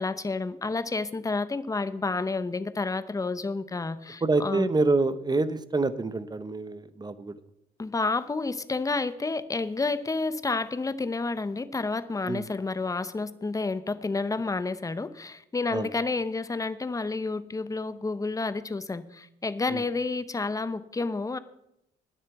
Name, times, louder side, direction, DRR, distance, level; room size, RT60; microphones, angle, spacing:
voice 1, 0.0-4.7 7.8-21.4, left 3 dB, 15° left, 14 dB, 0.7 m, -30 dB
voice 2, 4.2-7.4 12.2-12.4 15.7-15.9 19.7-19.8, right 3 dB, 20° right, 13 dB, 0.8 m, -26 dB
10.5 x 7.0 x 8.2 m, 0.80 s
cardioid pair, 90°, 20 cm